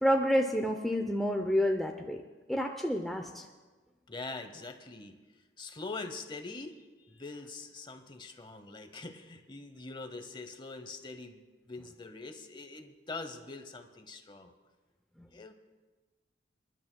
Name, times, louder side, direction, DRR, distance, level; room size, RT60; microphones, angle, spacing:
voice 1, 0.0-2.2 2.5-3.4, equal, ahead, 2 dB, 0.5 m, -29 dB
voice 2, 4.1-5.2 5.6-14.5 15.3-15.5, left 3 dB, 25° left, 7 dB, 0.8 m, -43 dB
27.5 x 11.0 x 2.2 m, 1.3 s
head